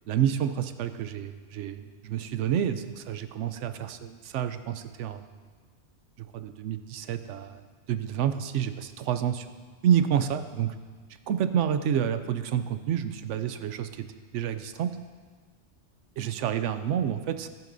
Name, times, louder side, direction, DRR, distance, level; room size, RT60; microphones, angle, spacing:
voice 1, 0.1-5.2 6.2-7.6 7.9-9.5 9.8-10.7 11.3-14.1 14.3-14.9 16.2-17.5, right 9 dB, 75° right, 10 dB, 0.9 m, -29 dB
15.0 x 9.1 x 2.6 m, 1.5 s
omnidirectional pair, 1.2 m